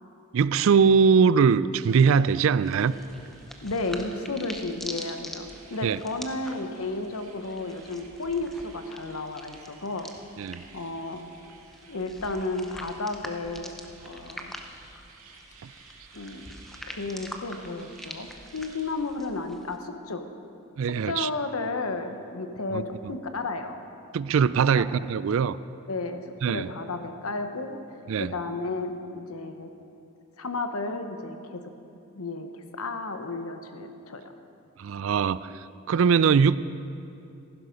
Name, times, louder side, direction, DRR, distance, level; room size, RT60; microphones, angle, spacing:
voice 1, 0.3-2.9 5.8-6.0 10.4-10.6 20.8-21.3 22.7-22.8 24.1-25.6 26.4-26.7 28.1-28.3 34.8-36.6, right 6 dB, 65° right, 17 dB, 0.3 m, -21 dB
sound 1, 1.8-19.0, right 4 dB, 80° right, 1.9 m, -54 dB
sound 2, 2.6-19.8, equal, ahead, 0.6 m, -45 dB
voice 2, 3.6-10.1 10.7-11.2 11.9-13.7 14.0-14.5 16.1-16.5 16.8-20.3 20.8-23.8 24.8-24.9 25.9-27.8 28.2-29.7 30.4-31.6 32.1-34.2, left 3 dB, 80° left, 7 dB, 1.0 m, -33 dB
15.0 x 11.5 x 5.2 m, 2.7 s
head